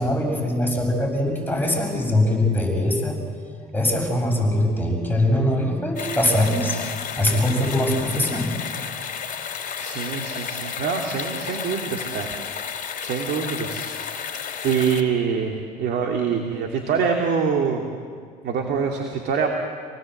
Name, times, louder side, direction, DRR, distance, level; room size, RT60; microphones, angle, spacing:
voice 1, 0.0-3.2 3.7-6.8 7.2-8.5, left 1 dB, 10° left, 1 dB, 7.1 m, -22 dB
sound 1, 6.0-15.0, left 7 dB, 40° left, 2.9 m, -32 dB
voice 2, 9.8-12.3 12.7-14.4 14.6-17.8 18.4-19.5, right 6 dB, 55° right, 2 dB, 2.8 m, -25 dB
28.0 x 19.0 x 8.0 m, 2.1 s
hypercardioid pair, 75°, 21 cm